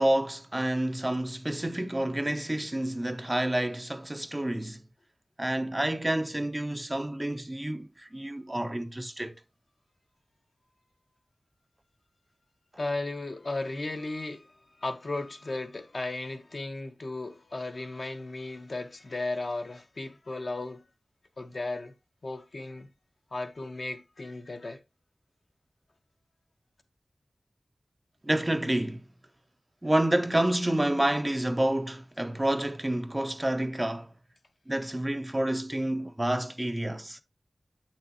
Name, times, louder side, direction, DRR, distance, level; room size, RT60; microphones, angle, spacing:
voice 1, 0.0-4.8 5.4-9.3 28.2-29.1 29.8-34.1 34.7-37.2, right 1 dB, 20° right, 0.6 m, -29 dB
voice 2, 12.8-20.8 21.4-21.9 22.2-22.9 23.3-24.8, left 2 dB, 60° left, 1.1 m, -35 dB
7.6 x 6.0 x 2.9 m
wide cardioid pair, 55°, 0 cm